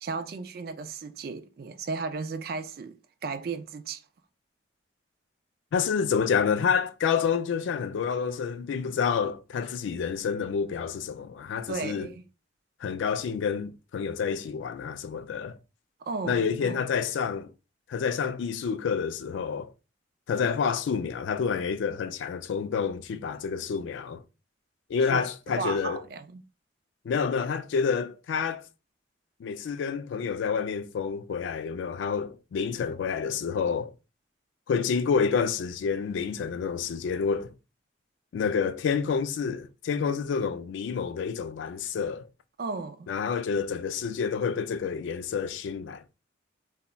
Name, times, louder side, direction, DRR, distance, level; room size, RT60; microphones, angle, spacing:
voice 1, 0.0-4.0 11.7-12.2 16.0-16.8 25.1-25.2 25.6-26.4 42.6-43.1, right 4 dB, 50° right, 0.3 m, -35 dB
voice 2, 5.7-12.1 12.8-15.6 16.2-17.5 17.9-19.7 20.3-24.2 24.9-26.0 27.0-28.6 29.4-33.9 34.7-37.5 38.3-42.3 43.1-46.0, left 6 dB, 75° left, 0.3 m, -28 dB
3.8 x 2.1 x 2.2 m
head